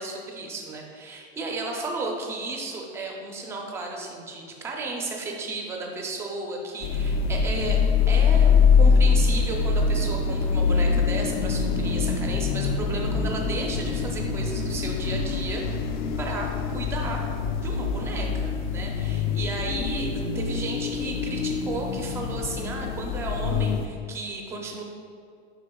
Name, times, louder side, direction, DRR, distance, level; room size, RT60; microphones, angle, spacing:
voice 1, 0.0-7.8 8.1-15.9 16.2-17.2 17.6-24.8, right 3 dB, 10° right, 0 dB, 0.4 m, -34 dB
sound 1, 6.8-23.9, left 5 dB, 50° left, 0.4 m, -24 dB
8.4 x 5.2 x 2.2 m, 2.3 s
supercardioid pair, 160°, 31 cm